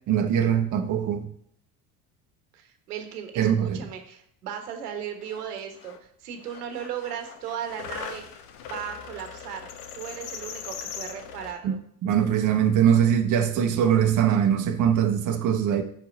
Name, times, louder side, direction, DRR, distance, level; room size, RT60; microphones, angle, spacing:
voice 1, 0.1-1.2 3.4-3.8 11.6-11.7 12.0-15.8, right 9 dB, 40° right, 0.9 m, -22 dB
voice 2, 2.5-8.2 8.7-9.7 9.9-11.8, right 8 dB, 80° right, 1.2 m, -36 dB
sound 1, 4.9-5.0 5.2-6.0 6.4-11.5, left 7 dB, 75° left, 0.9 m, -40 dB
5.4 x 4.6 x 5.1 m
hypercardioid pair, 70°, 46 cm